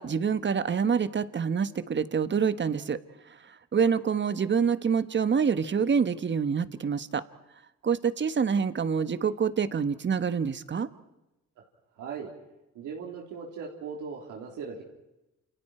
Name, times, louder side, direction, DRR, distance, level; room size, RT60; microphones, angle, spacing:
voice 1, 0.0-3.0 3.7-7.2 7.8-10.9, right 6 dB, 40° right, 12 dB, 1.4 m, -26 dB
voice 2, 12.0-12.3 12.7-14.8, right 5 dB, 85° right, -2 dB, 3.8 m, -38 dB
29.0 x 28.5 x 4.5 m, 0.95 s
cardioid pair, 90°, 30 cm